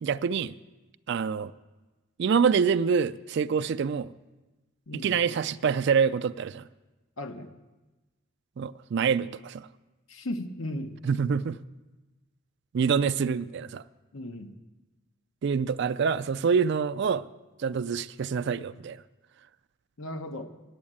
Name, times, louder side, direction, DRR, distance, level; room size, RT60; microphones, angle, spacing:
voice 1, 0.0-0.6 1.1-1.5 2.2-4.1 4.9-6.7 8.6-9.7 11.0-11.6 12.7-13.8 15.4-17.3 17.6-19.0, right 6 dB, 55° right, 13 dB, 0.3 m, -26 dB
voice 2, 4.9-5.2 7.2-7.5 10.1-11.0 14.1-14.5 20.0-20.5, left 1 dB, 75° left, 7 dB, 1.0 m, -36 dB
9.5 x 7.1 x 8.8 m, 1.1 s
head